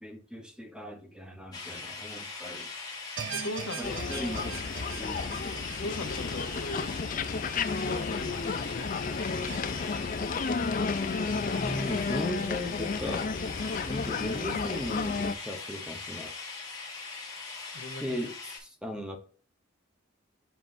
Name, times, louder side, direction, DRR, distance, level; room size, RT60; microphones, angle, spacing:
voice 1, 0.0-2.7 3.8-4.6 5.0-5.4 11.3-13.3 13.9-16.3 18.0-19.2, equal, 5° right, 1.0 m, -38 dB
sound 1, 1.5-18.6, left 4 dB, 20° left, 1.9 m, -41 dB
sound 2, 3.2-8.4 8.8-8.9 9.5-9.6, right 7 dB, 70° right, 0.6 m, -42 dB
voice 2, 3.3-4.0 5.8-6.9 7.7-9.0 17.7-18.2, left 2 dB, 65° left, 0.9 m, -39 dB
sound 3, 3.8-15.3, left 4 dB, 40° left, 0.4 m, -32 dB
7.4 x 5.7 x 2.6 m
head